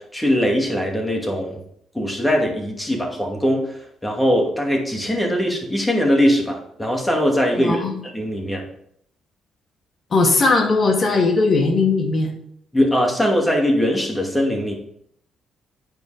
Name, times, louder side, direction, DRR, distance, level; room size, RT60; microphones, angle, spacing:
voice 1, 0.0-1.6 1.9-7.8 8.1-8.6 12.7-14.7, equal, 10° left, 0 dB, 2.5 m, -21 dB
voice 2, 7.6-8.0 10.1-12.3, left 3 dB, 45° left, 0 dB, 2.5 m, -18 dB
9.4 x 5.3 x 5.2 m, 0.71 s
cardioid pair, 90°, 0 cm